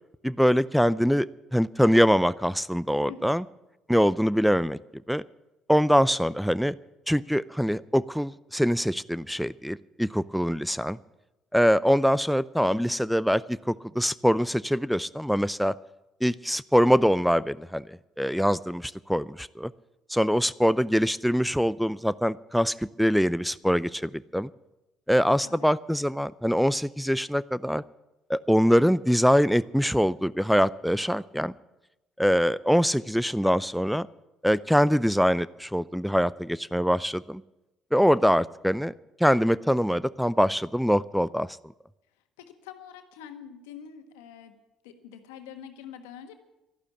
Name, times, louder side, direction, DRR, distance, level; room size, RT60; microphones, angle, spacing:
voice 1, 0.2-3.4 3.9-4.8 5.1-5.2 5.7-6.8 7.1-11.0 11.5-15.7 16.2-19.7 20.1-24.5 25.1-27.8 28.3-31.5 32.2-34.1 34.4-37.4 37.9-38.9 39.2-41.6, equal, ahead, 16 dB, 0.5 m, -23 dB
voice 2, 3.1-3.4 12.6-12.9 25.4-25.7 42.4-44.6 44.8-46.3, left 8 dB, 85° left, 7 dB, 1.5 m, -45 dB
12.5 x 11.5 x 8.5 m, 0.97 s
hypercardioid pair, 60°, 0 cm